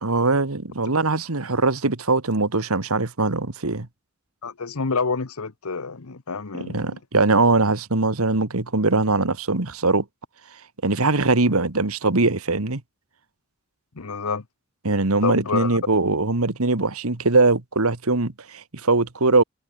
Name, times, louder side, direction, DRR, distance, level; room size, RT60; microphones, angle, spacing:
voice 1, 0.0-3.9 6.5-10.1 10.8-12.8 14.8-19.4, right 3 dB, 80° right, 1.8 m, -21 dB
voice 2, 4.4-7.0 13.9-14.4 15.2-15.8, left 4 dB, 85° left, 1.1 m, -28 dB
head